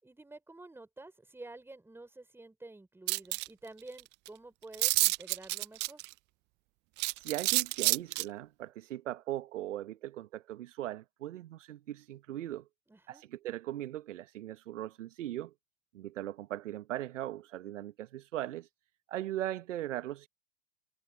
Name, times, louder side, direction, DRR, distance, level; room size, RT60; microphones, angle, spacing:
voice 1, 0.0-6.0 12.9-13.2, right 2 dB, 5° right, 5.3 m, -50 dB
sound 1, 3.1-3.5 4.0-4.1 4.3-4.4 4.7-6.1 7.0-8.2, right 23 dB, 30° right, 0.5 m, -28 dB
voice 2, 7.2-12.7 13.1-15.5 15.9-18.7 19.1-20.3, right 13 dB, 65° right, 1.3 m, -39 dB
hypercardioid pair, 100°, 40 cm